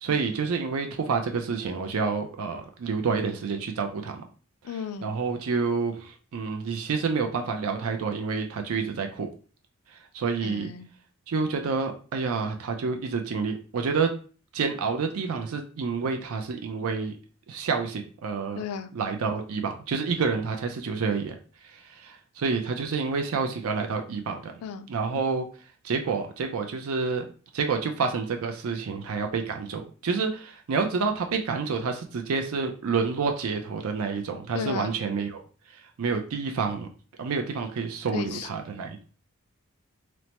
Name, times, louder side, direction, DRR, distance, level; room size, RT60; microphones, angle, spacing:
voice 1, 0.0-4.2 5.0-9.3 10.1-10.7 11.3-14.1 14.5-17.1 17.5-18.6 18.9-21.4 21.6-24.5 24.9-25.5 25.8-27.3 27.5-35.4 36.0-36.9 37.2-39.0, right 5 dB, 70° right, 5 dB, 0.4 m, -28 dB
voice 2, 4.6-5.1 10.4-10.9 18.6-18.9 24.6-24.9 34.5-35.0 38.1-38.5, left 6 dB, 90° left, 11 dB, 0.3 m, -34 dB
3.1 x 2.0 x 2.8 m, 0.39 s
head